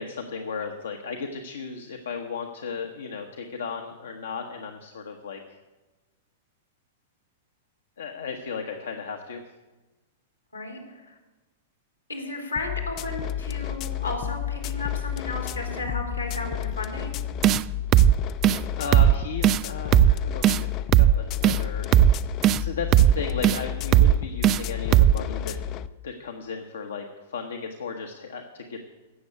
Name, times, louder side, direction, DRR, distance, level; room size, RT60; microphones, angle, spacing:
voice 1, 0.0-5.4 8.0-9.4 18.8-22.0 22.6-25.5 26.0-28.9, left 5 dB, 70° left, 4 dB, 1.1 m, -35 dB
voice 2, 10.5-11.1 12.1-17.2, left 2 dB, 85° left, 2 dB, 3.4 m, -34 dB
sound 1, 12.6-25.9, left 10 dB, 35° left, 0.5 m, -31 dB
sound 2, 17.4-17.6 17.9-18.1 18.4-18.6 18.9-19.1 19.4-19.6 19.9-20.1 20.4-20.6 20.9-21.1 21.4-21.6 21.9-22.1 22.4-22.6 22.9-23.1 23.4-23.6 23.9-24.1 24.4-24.6 24.9-25.1, right 13 dB, 30° right, 0.3 m, -16 dB
16.5 x 7.1 x 8.3 m, 1.2 s
figure-of-eight pair, 100°, 0 cm